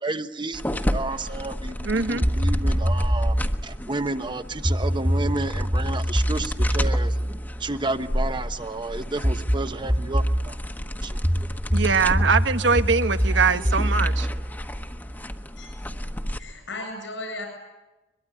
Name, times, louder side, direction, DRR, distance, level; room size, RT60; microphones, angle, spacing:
voice 1, 0.0-3.4 3.6-7.2 7.6-10.6 11.0-11.2, right 2 dB, 25° right, 10 dB, 1.1 m, -31 dB
sound 1, 0.5-16.4, equal, 10° left, 1.2 m, -32 dB
voice 2, 1.8-2.3 11.7-14.3, right 5 dB, 80° right, 10 dB, 1.1 m, -22 dB
sound 2, 2.2-3.5 4.6-8.4 9.2-10.5 11.2-15.2, equal, 5° right, 1.6 m, -24 dB
voice 3, 16.4-17.5, left 2 dB, 85° left, 5 dB, 8.0 m, -36 dB
23.0 x 22.5 x 10.0 m, 1.1 s
head